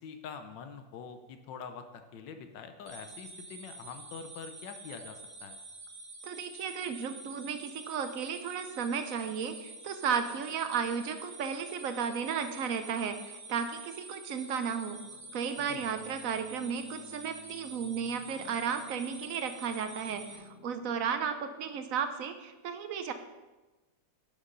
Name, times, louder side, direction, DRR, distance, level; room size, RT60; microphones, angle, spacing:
voice 1, 0.0-5.6 15.6-15.8, left 6 dB, 80° left, 7 dB, 1.5 m, -45 dB
sound 1, 2.9-20.4, right 2 dB, 40° right, 1.4 m, -48 dB
voice 2, 6.2-15.0 15.3-23.1, right 7 dB, 65° right, 9 dB, 0.9 m, -34 dB
sound 2, 14.9-21.1, left 4 dB, 50° left, 1.1 m, -56 dB
10.5 x 7.1 x 3.9 m, 1.2 s
omnidirectional pair, 2.0 m